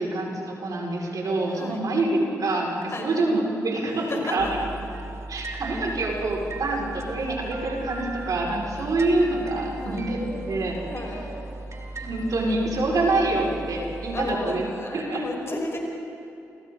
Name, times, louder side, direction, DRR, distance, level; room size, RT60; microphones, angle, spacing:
voice 1, 0.0-4.6 5.3-10.8 12.0-14.7 14.9-15.2, right 2 dB, 60° right, -2 dB, 5.4 m, -26 dB
voice 2, 1.5-1.8 2.9-3.1 4.1-4.5 9.8-10.1 10.9-11.2 14.1-15.8, left 2 dB, 40° left, 0 dB, 5.3 m, -33 dB
sound 1, 4.4-14.4, right 2 dB, 45° right, 2.9 m, -37 dB
29.0 x 23.0 x 4.0 m, 2.8 s
supercardioid pair, 50°, 7 cm